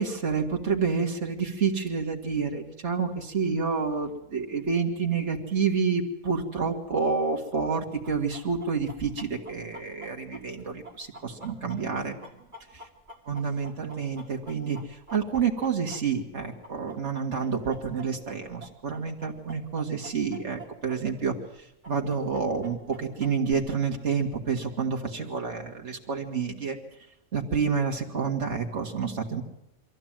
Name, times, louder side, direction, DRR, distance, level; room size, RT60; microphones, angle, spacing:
voice 1, 0.0-12.1 12.7-12.9 13.3-26.8 27.3-29.4, right 5 dB, 65° right, 1 dB, 2.3 m, -29 dB
Chicken rooster, 8.0-16.3 16.6-21.0 21.2-21.3 21.8-23.5, right 2 dB, 40° right, 2.8 m, -46 dB
23.5 x 14.5 x 9.1 m, 0.82 s
omnidirectional pair, 1.3 m